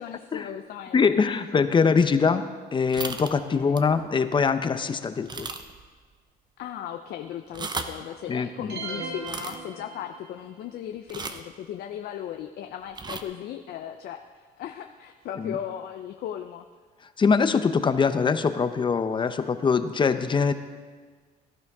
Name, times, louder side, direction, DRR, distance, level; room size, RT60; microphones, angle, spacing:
voice 1, 0.0-1.2 3.6-3.8 6.6-16.6, left 10 dB, 70° left, 6 dB, 0.7 m, -37 dB
voice 2, 0.9-2.4 2.7-5.5 8.3-8.7 15.4-15.5 17.2-20.5, left 5 dB, 30° left, 10 dB, 0.8 m, -23 dB
sound 1, 2.9-3.3 3.8-3.9 4.4-4.5 5.3-5.9 6.1-6.2 7.4-8.0 9.2-9.6 11.1-11.5 12.9-13.2, right 4 dB, 25° right, 0.8 m, -35 dB
sound 2, 8.7-10.5, right 3 dB, 75° right, 2.0 m, -37 dB
17.0 x 12.0 x 3.6 m, 1.5 s
cardioid pair, 110°, 17 cm